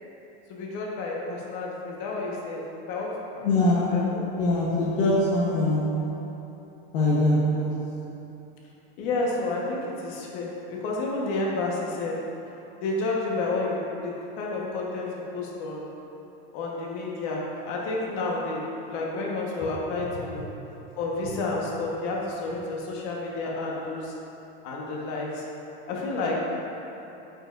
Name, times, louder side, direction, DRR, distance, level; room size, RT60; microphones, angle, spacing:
voice 1, 0.5-4.3 9.0-12.3 12.8-15.9 16.5-20.5 21.0-24.1 24.6-25.4 25.9-26.6, left 2 dB, 55° left, -3 dB, 1.3 m, -30 dB
voice 2, 3.4-6.4 6.9-8.3 20.3-20.4, left 1 dB, 70° left, -6 dB, 1.1 m, -24 dB
8.5 x 5.4 x 2.6 m, 3.0 s
supercardioid pair, 130°, 29 cm